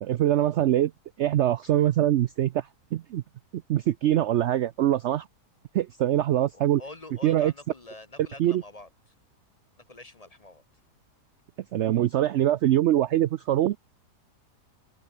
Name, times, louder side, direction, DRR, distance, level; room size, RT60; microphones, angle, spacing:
voice 1, 0.0-0.9 1.2-3.2 3.5-5.3 5.7-6.8 7.2-7.5 8.4-8.6 11.7-13.8, right 12 dB, 75° right, 0.6 m, -23 dB
voice 2, 6.5-8.9 9.9-10.6, left 2 dB, 25° left, 1.0 m, -45 dB
omnidirectional pair, 1.7 m